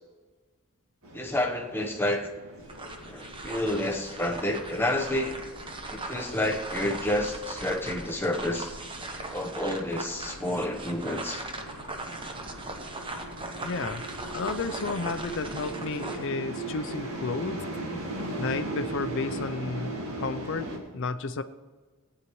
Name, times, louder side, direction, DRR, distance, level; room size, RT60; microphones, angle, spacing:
sound 1, 1.0-20.8, right 1 dB, 75° right, 1.9 m, -40 dB
voice 1, 1.1-2.3 3.1-5.4 5.9-8.8 9.3-11.4, left 1 dB, 10° left, 2 dB, 1.0 m, -29 dB
sound 2, 2.6-16.3, right 2 dB, 25° right, 1.0 m, -39 dB
voice 2, 13.6-14.0 14.3-17.6 17.9-18.0 18.4-21.4, left 3 dB, 60° left, 11 dB, 0.5 m, -32 dB
18.0 x 9.6 x 3.1 m, 1.4 s
head